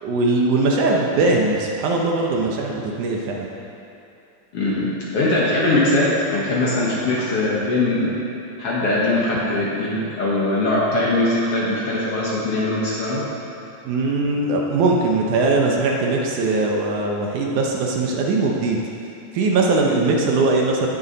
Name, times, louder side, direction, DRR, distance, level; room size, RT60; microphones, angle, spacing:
voice 1, 0.0-3.5 13.9-18.8 19.3-20.9, right 3 dB, 70° right, -1 dB, 2.2 m, -20 dB
voice 2, 4.5-8.1 8.6-13.2, left 2 dB, 55° left, -6 dB, 2.0 m, -21 dB
15.5 x 7.1 x 4.0 m, 2.7 s
omnidirectional pair, 3.9 m